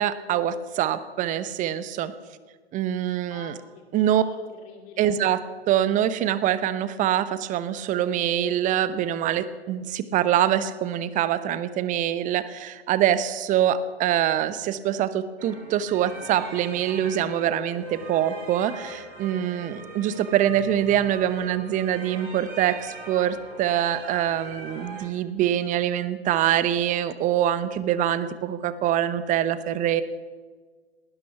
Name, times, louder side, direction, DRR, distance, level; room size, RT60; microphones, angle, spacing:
voice 1, 0.0-2.1 2.7-3.5 3.9-4.2 5.0-5.4 5.7-30.0, right 11 dB, 25° right, 15 dB, 0.8 m, -24 dB
voice 2, 3.3-5.2, left 5 dB, 35° left, 3 dB, 2.5 m, -45 dB
sound 1, 15.4-25.0, right 2 dB, 55° right, 5.0 m, -41 dB
19.0 x 12.5 x 5.8 m, 1.5 s
figure-of-eight pair, 105°, 32 cm